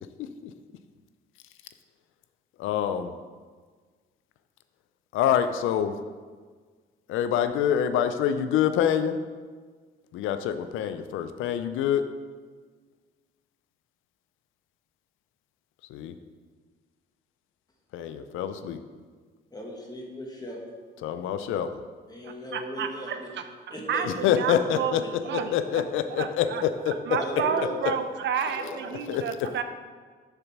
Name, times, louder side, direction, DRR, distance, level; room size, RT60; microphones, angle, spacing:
voice 1, 0.2-0.5 2.6-3.1 5.1-5.9 7.1-9.2 10.1-12.0 15.9-16.1 17.9-18.8 21.0-21.8 24.0-27.2 29.1-29.2, left 9 dB, 85° left, 10 dB, 0.4 m, -26 dB
voice 2, 19.5-20.6 22.1-23.3 23.7-24.0 27.2-27.9 28.5-28.8, equal, 20° left, -1 dB, 1.6 m, -36 dB
voice 3, 22.2-23.2 23.9-25.8 26.2-26.6 27.1-29.6, right 7 dB, 65° right, 8 dB, 0.6 m, -31 dB
6.7 x 4.1 x 5.9 m, 1.5 s
cardioid pair, 90°, 20 cm